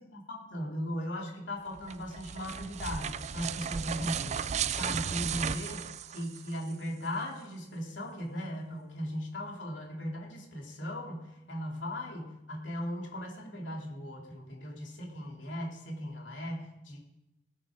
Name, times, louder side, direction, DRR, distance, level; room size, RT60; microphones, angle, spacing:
voice 1, 0.1-17.0, equal, 80° left, 0 dB, 3.1 m, -38 dB
sound 1, 1.8-6.7, right 7 dB, 40° right, 0.4 m, -35 dB
18.5 x 8.9 x 5.1 m, 0.92 s
head